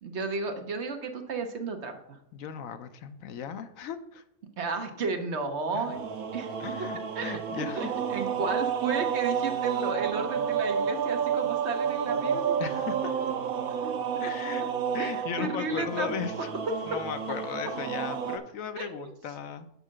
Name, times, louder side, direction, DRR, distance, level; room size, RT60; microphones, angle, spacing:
voice 1, 0.0-2.2 4.6-6.0 6.3-6.5 7.1-12.6 13.8-13.9 14.6-16.2 16.9-17.0 18.1-18.2 18.8-19.1, right 4 dB, 55° right, 6 dB, 1.0 m, -33 dB
voice 2, 2.3-4.2 5.7-5.9 6.6-7.9 12.6-13.1 14.2-14.7 14.9-16.5 16.9-19.7, left 8 dB, 70° left, 9 dB, 1.0 m, -36 dB
sound 1, 5.8-18.4, right 7 dB, 80° right, 1.2 m, -30 dB
6.6 x 4.8 x 6.2 m, 0.76 s
omnidirectional pair, 1.5 m